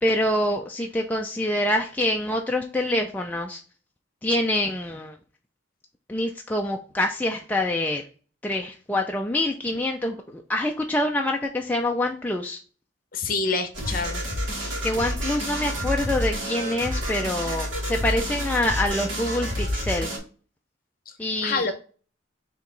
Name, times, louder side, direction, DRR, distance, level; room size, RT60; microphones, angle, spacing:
voice 1, 0.0-3.6 4.2-5.1 6.1-8.0 8.4-12.6 14.8-20.1 21.2-21.7, left 1 dB, 10° left, 1 dB, 0.3 m, -26 dB
voice 2, 13.1-14.2 21.4-21.7, left 4 dB, 45° left, 7 dB, 0.7 m, -26 dB
sound 1, 13.7-20.2, equal, 80° right, 1.5 m, -29 dB
4.6 x 2.9 x 3.8 m, 0.39 s
head